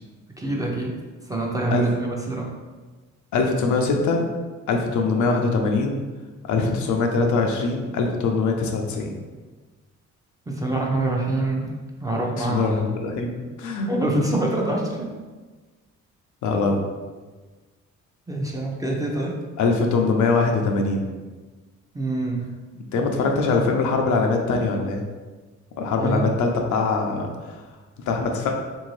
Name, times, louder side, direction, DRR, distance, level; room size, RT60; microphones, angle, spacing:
voice 1, 0.4-0.9 1.3-2.5 10.5-11.7 12.0-12.7 13.8-15.1 18.3-19.4 21.9-22.5 22.9-23.1 25.9-26.4, right 2 dB, 10° right, -2 dB, 0.6 m, -25 dB
voice 2, 3.3-4.3 4.7-6.0 6.5-9.2 12.4-13.3 13.6-13.9 16.4-16.8 19.6-21.1 22.9-25.0 25.8-27.6 28.1-28.5, left 4 dB, 75° left, 2 dB, 0.6 m, -22 dB
3.4 x 2.6 x 3.2 m, 1.3 s
cardioid pair, 90°, 30 cm